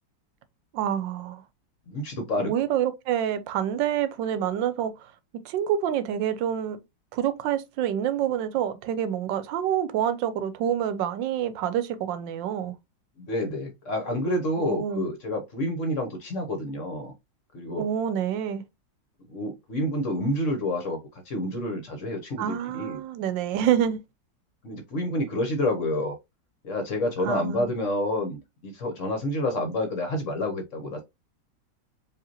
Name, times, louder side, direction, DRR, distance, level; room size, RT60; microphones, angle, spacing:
voice 1, 0.7-1.4 2.4-5.1 5.4-6.8 7.1-12.8 14.6-15.1 17.8-18.6 22.4-24.0 27.2-27.7, right 9 dB, 85° right, 1.3 m, -27 dB
voice 2, 1.9-2.5 13.2-17.1 17.5-17.8 19.3-21.0 21.2-23.0 24.6-26.2 26.6-31.0, left 1 dB, 55° left, 1.0 m, -29 dB
4.9 x 2.9 x 2.8 m
omnidirectional pair, 2.0 m